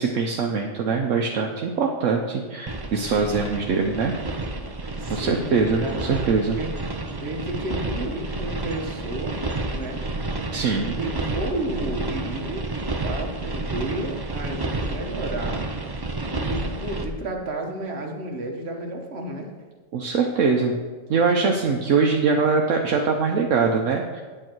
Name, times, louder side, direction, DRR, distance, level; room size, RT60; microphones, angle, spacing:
voice 1, 0.0-4.1 5.1-6.6 10.5-11.0 19.9-20.7 21.1-24.2, right 4 dB, 70° right, 1 dB, 1.1 m, -22 dB
sound 1, 2.7-17.1, right 2 dB, 25° right, 0.6 m, -30 dB
voice 2, 5.0-6.7 7.2-9.4 9.7-10.1 10.9-12.7 13.0-15.7 16.3-19.5, right 2 dB, 55° right, 2 dB, 1.5 m, -32 dB
8.8 x 8.6 x 4.6 m, 1.4 s
omnidirectional pair, 1.4 m